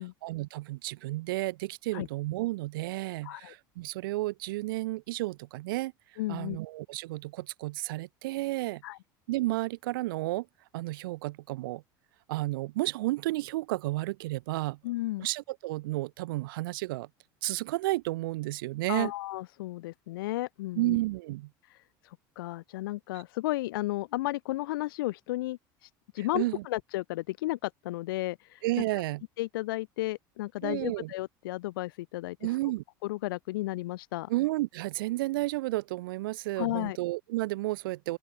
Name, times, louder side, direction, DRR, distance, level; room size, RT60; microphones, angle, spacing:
voice 1, 0.2-5.9 6.3-8.8 9.3-10.5 10.7-11.8 12.3-14.8 15.2-17.1 17.4-19.1 20.8-21.5 26.2-26.6 28.6-29.2 30.6-31.1 32.4-32.8 34.3-38.2, right 19 dB, 80° right, 0.7 m, -32 dB
voice 2, 3.2-3.5 6.2-6.6 8.8-9.0 14.8-15.3 18.9-21.0 21.7-21.8 22.0-28.6 29.4-32.5 33.0-34.3 36.6-37.0, left 18 dB, 85° left, 0.4 m, -33 dB
open air
supercardioid pair, 90°, 11 cm